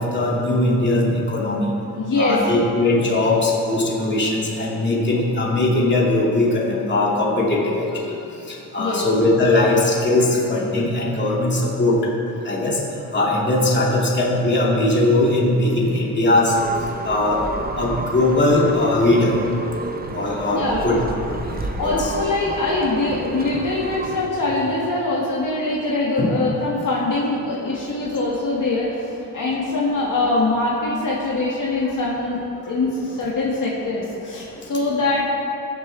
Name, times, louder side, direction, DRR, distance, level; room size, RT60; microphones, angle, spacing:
voice 1, 0.0-1.7 2.2-8.1 8.5-12.1 12.4-12.8 13.1-16.6 17.0-17.4 17.8-19.4 20.1-21.0 21.5-22.1 26.2-26.3, left 2 dB, 25° left, -4 dB, 2.4 m, -20 dB
voice 2, 2.0-2.4 8.8-9.0 20.5-20.9 21.8-35.2, left 2 dB, 50° left, -5 dB, 2.0 m, -23 dB
sound 1, 16.5-24.3, right 3 dB, 25° right, 0.7 m, -31 dB
21.0 x 7.6 x 3.4 m, 2.8 s
cardioid pair, 115°, 41 cm